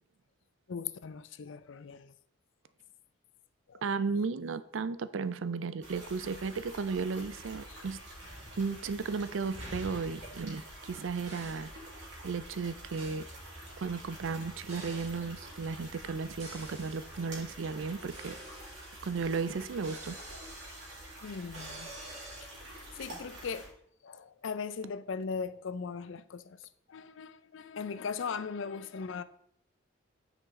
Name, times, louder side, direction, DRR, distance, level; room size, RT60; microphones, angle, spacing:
voice 1, 0.7-2.1 3.7-3.8 7.7-7.9 21.2-21.9 22.4-22.5 22.8-23.7 24.0-26.6 26.9-29.2, left 5 dB, 75° left, 0.5 m, -39 dB
voice 2, 3.8-8.0 8.6-11.7 12.2-13.2 13.8-18.4 19.0-20.2, right 4 dB, 80° right, 0.5 m, -34 dB
sound 1, 5.8-23.7, right 1 dB, 60° right, 2.9 m, -48 dB
sound 2, 8.2-9.1 9.5-10.9 11.3-11.7 13.0-13.3 14.7-15.2 16.4-17.2 18.1-19.2 19.8-22.4, right 1 dB, 35° right, 2.5 m, -48 dB
9.3 x 5.1 x 3.7 m
head